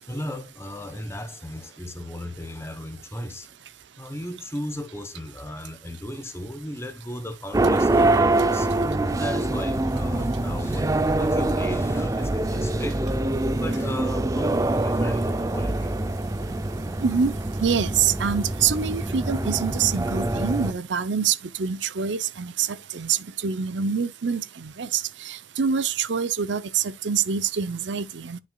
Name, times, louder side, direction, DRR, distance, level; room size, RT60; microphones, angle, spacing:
voice 1, 0.0-3.5 4.0-8.7 9.1-13.1 13.5-16.3, left 1 dB, 15° left, 0.9 m, -36 dB
sound 1, 7.5-20.7, right 2 dB, 20° right, 0.4 m, -24 dB
voice 2, 17.0-17.3 17.6-28.4, right 6 dB, 90° right, 0.7 m, -25 dB
10.5 x 6.1 x 2.3 m
head